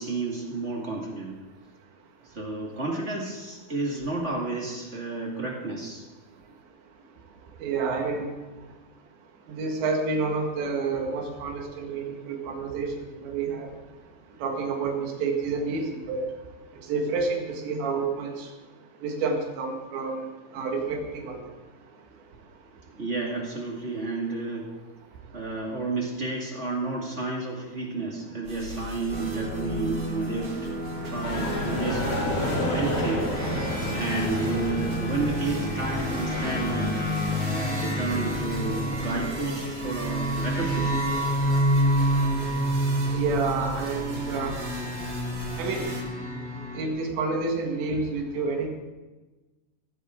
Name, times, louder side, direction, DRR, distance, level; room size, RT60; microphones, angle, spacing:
voice 1, 0.0-1.4 2.2-6.0 23.0-24.7 25.3-30.5 31.0-32.0 32.4-33.4 33.9-37.0 37.2-41.0, right 3 dB, 30° right, -2 dB, 1.3 m, -31 dB
voice 2, 7.6-8.3 9.5-12.9 13.2-13.7 14.4-16.2 16.9-18.5 19.0-20.3 20.5-21.4 43.1-44.6 45.6-45.9 46.8-48.7, right 4 dB, 80° right, 2 dB, 4.2 m, -29 dB
sound 1, 28.4-46.0, right 1 dB, 60° right, 4.9 m, -39 dB
sound 2, 29.1-46.8, equal, 5° left, 2.3 m, -29 dB
sound 3, 31.2-41.6, left 1 dB, 40° left, 4.3 m, -33 dB
17.5 x 16.0 x 3.8 m, 1.2 s
omnidirectional pair, 5.0 m